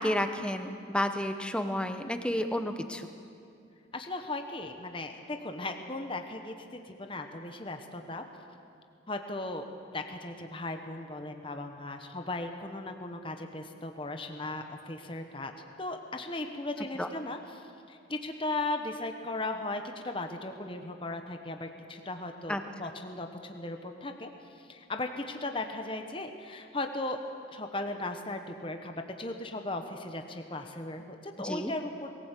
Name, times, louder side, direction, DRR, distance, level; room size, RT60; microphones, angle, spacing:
voice 1, 0.0-3.1 17.0-17.1 22.5-22.6 31.4-31.7, left 1 dB, 5° left, 7 dB, 0.9 m, -31 dB
voice 2, 3.9-8.2 9.1-9.6 9.9-15.5 15.8-27.2 27.5-32.1, left 2 dB, 25° left, 5 dB, 1.2 m, -37 dB
21.5 x 16.5 x 8.3 m, 2.5 s
head